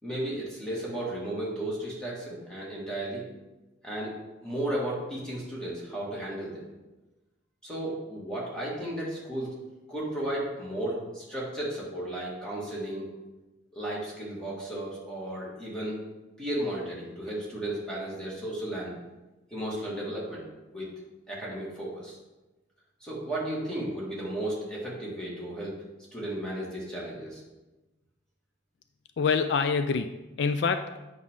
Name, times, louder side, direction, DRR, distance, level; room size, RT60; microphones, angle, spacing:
voice 1, 0.0-3.2 3.8-4.1 4.4-6.7 7.6-9.5 9.9-13.1 13.7-16.0 16.4-18.9 19.5-20.5 20.7-20.9 21.3-22.2 23.0-25.7 26.1-27.4, right 1 dB, 5° left, -6 dB, 2.0 m, -34 dB
voice 2, 29.2-31.0, left 5 dB, 60° left, 9 dB, 0.3 m, -26 dB
8.2 x 6.0 x 3.7 m, 1.1 s
head